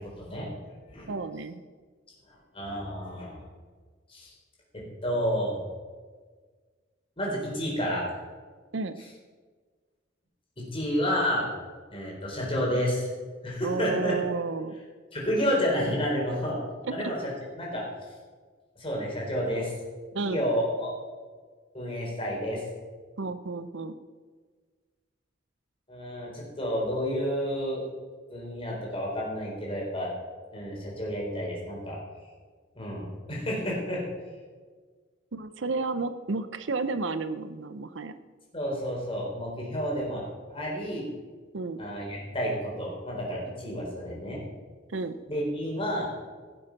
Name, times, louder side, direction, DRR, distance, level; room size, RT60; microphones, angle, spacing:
voice 1, 1.1-1.6 8.7-9.0 13.6-14.7 16.8-17.1 20.1-20.4 23.2-23.9 35.3-38.1 41.5-41.8 44.9-45.1, right 3 dB, 70° right, 12 dB, 0.6 m, -31 dB
voice 2, 2.5-3.4 4.1-4.3 5.0-5.6 7.2-8.2 10.6-11.5 11.9-13.1 13.4-14.1 15.1-16.6 16.9-17.2 17.6-17.8 18.8-19.7 20.2-20.9 21.7-22.6 25.9-27.8 28.3-30.1 30.5-32.0 32.8-34.0 38.5-40.2 40.5-41.0 41.8-44.4 45.3-46.1, equal, 30° left, -3 dB, 4.2 m, -30 dB
16.5 x 7.7 x 6.0 m, 1.5 s
head